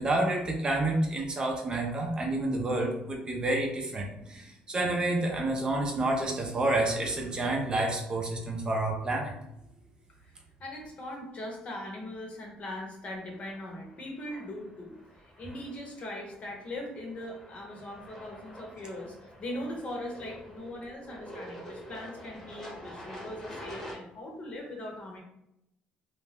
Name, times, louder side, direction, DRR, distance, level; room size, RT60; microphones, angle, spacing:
voice 1, 0.0-9.3, right 2 dB, 30° right, 0 dB, 0.5 m, -29 dB
voice 2, 10.6-25.2, left 1 dB, 45° left, 0 dB, 0.9 m, -40 dB
sound 1, 13.2-23.9, equal, 15° left, 0.9 m, -47 dB
2.4 x 2.2 x 3.3 m, 0.82 s
cardioid pair, 100°, 3 cm